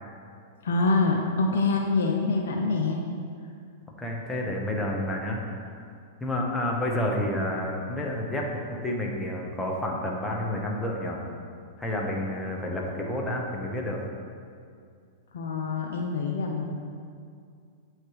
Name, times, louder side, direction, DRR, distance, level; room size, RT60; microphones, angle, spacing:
voice 1, 0.6-3.0 15.3-16.7, left 3 dB, 75° left, 1 dB, 0.6 m, -25 dB
voice 2, 4.0-5.8 6.2-11.2 11.8-14.0, left 1 dB, 10° left, -2 dB, 1.0 m, -30 dB
8.3 x 3.2 x 4.7 m, 2.3 s
hypercardioid pair, 120°, 0 cm